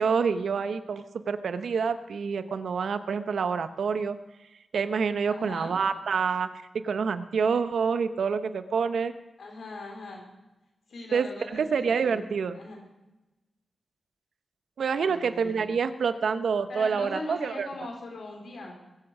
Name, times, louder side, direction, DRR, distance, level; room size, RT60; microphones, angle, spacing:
voice 1, 0.0-4.2 4.7-6.5 6.8-9.1 11.1-12.6 14.8-17.7, right 5 dB, 80° right, 11 dB, 0.8 m, -27 dB
voice 2, 5.3-5.7 9.4-10.2 10.9-12.8 15.0-15.7 16.7-18.7, left 2 dB, 80° left, 0 dB, 4.4 m, -40 dB
21.5 x 8.0 x 6.5 m, 1.0 s
cardioid pair, 45°, 0 cm